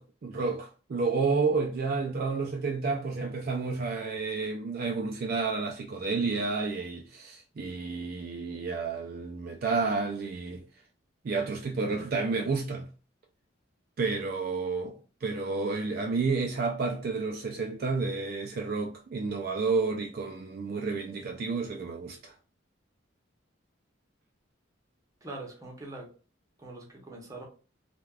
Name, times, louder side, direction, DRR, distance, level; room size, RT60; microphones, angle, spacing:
voice 1, 0.0-10.6 11.2-12.9 14.0-22.3, right 4 dB, 50° right, 0.3 m, -30 dB
voice 2, 25.2-26.1 26.6-27.4, right 2 dB, 15° right, 0.7 m, -42 dB
3.3 x 2.2 x 2.3 m
head